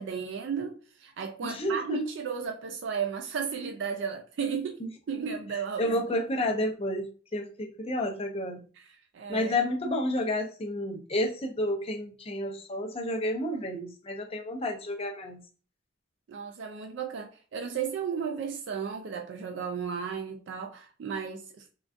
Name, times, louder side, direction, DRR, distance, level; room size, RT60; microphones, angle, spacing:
voice 1, 0.0-6.2 8.7-9.6 16.3-21.7, right 6 dB, 65° right, 0.3 m, -34 dB
voice 2, 1.4-2.0 5.8-8.6 9.3-15.4, left 1 dB, 30° left, 0.5 m, -30 dB
3.7 x 2.3 x 2.4 m
head